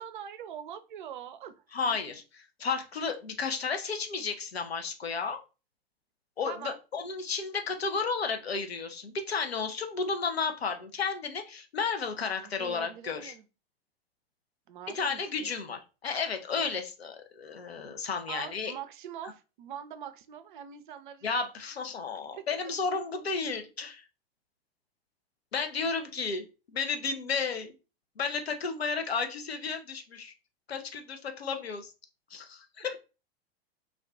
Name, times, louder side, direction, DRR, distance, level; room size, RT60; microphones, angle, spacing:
voice 1, 0.0-1.6 1.9-2.0 6.4-6.8 12.4-13.4 14.7-15.5 18.3-21.3 22.3-22.4, right 9 dB, 55° right, 10 dB, 0.5 m, -43 dB
voice 2, 1.7-2.2 2.6-5.4 6.4-13.3 14.9-18.7 21.2-24.0 25.5-27.7 28.2-30.3 30.7-31.9 32.3-33.0, left 5 dB, 80° left, 5 dB, 0.6 m, -33 dB
2.4 x 2.3 x 3.4 m, 0.31 s
figure-of-eight pair, 95°, 31 cm